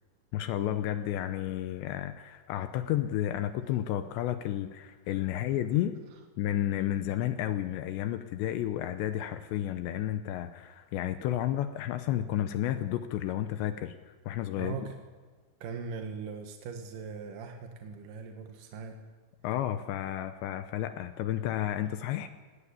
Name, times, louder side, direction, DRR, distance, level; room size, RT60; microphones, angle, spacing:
voice 1, 0.3-6.0 6.4-14.9 19.4-22.3, left 12 dB, 80° left, 9 dB, 2.6 m, -32 dB
voice 2, 14.5-14.9 15.6-19.0, right 5 dB, 70° right, 4 dB, 2.0 m, -40 dB
18.5 x 17.5 x 8.5 m, 1.5 s
omnidirectional pair, 6.0 m